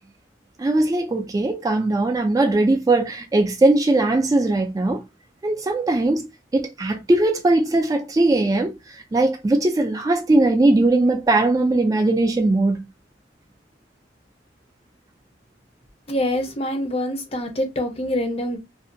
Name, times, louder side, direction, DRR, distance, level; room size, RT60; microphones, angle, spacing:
voice 1, 0.6-5.0 5.4-12.8, right 2 dB, 20° right, 0.3 m, -20 dB
voice 2, 16.1-18.6, left 1 dB, 35° left, 0.6 m, -25 dB
2.6 x 2.2 x 2.5 m
head